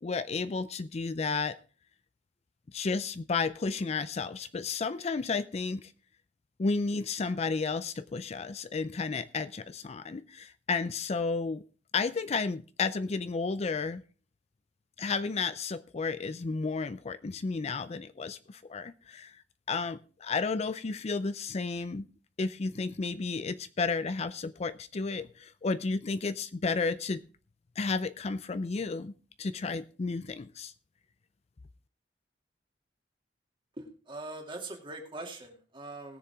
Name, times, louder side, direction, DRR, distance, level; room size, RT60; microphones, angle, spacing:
voice 1, 0.0-1.6 2.7-5.9 6.6-11.6 11.9-14.0 15.0-19.4 19.7-22.0 22.4-27.2 27.8-29.1 29.4-30.7, left 4 dB, 35° left, 13 dB, 0.4 m, -32 dB
voice 2, 33.8-36.2, right 2 dB, 30° right, 2 dB, 2.5 m, -42 dB
20.0 x 7.0 x 3.5 m, 0.37 s
head